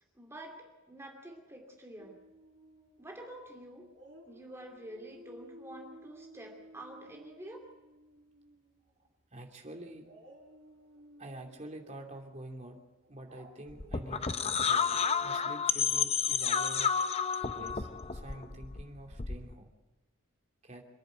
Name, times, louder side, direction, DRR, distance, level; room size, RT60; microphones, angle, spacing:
voice 1, 0.2-2.2 3.0-3.9 4.3-7.7, right 1 dB, 10° right, 1 dB, 2.6 m, -48 dB
Dog, 2.0-3.5 3.9-9.0 10.0-15.2, equal, 60° right, 4.3 m, -56 dB
voice 2, 9.3-10.1 11.2-12.8 13.1-14.3 14.6-14.9 15.2-17.0 17.4-19.7 20.6-20.9, right 1 dB, 35° right, 2 dB, 2.9 m, -47 dB
sound 1, 13.7-19.5, left 6 dB, 30° left, 0.7 m, -31 dB
27.0 x 10.5 x 9.2 m, 1.1 s
head